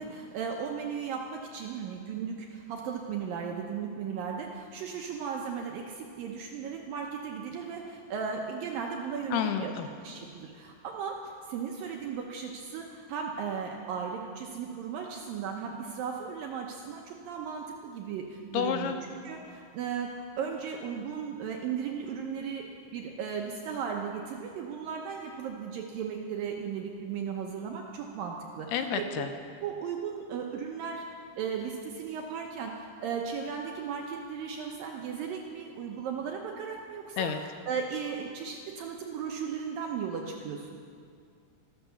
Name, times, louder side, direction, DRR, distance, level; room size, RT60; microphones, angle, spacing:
voice 1, 0.0-9.7 10.0-18.9 19.2-20.1 20.4-22.7 22.9-28.9 29.2-29.3 29.6-40.8, right 6 dB, 75° right, 1 dB, 2.1 m, -36 dB
voice 2, 9.3-9.9 18.5-19.0 28.7-29.3 37.2-37.4, left 8 dB, 80° left, 7 dB, 2.5 m, -30 dB
13.5 x 12.0 x 6.9 m, 2.3 s
omnidirectional pair, 5.0 m